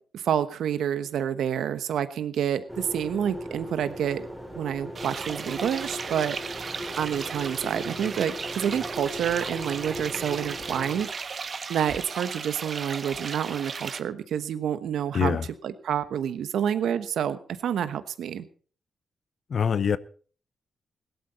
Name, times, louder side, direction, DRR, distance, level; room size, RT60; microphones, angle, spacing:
voice 1, 0.1-4.3 4.5-6.7 7.0-11.4 11.7-15.4 15.6-18.5, right 9 dB, 85° right, 1.1 m, -28 dB
sound 1, 2.7-11.0, equal, ahead, 3.2 m, -39 dB
sound 2, 5.0-14.0, right 5 dB, 50° right, 1.0 m, -36 dB
voice 2, 15.1-15.4 19.5-20.0, left 7 dB, 60° left, 0.6 m, -24 dB
17.0 x 12.0 x 4.3 m
cardioid pair, 80°, 0 cm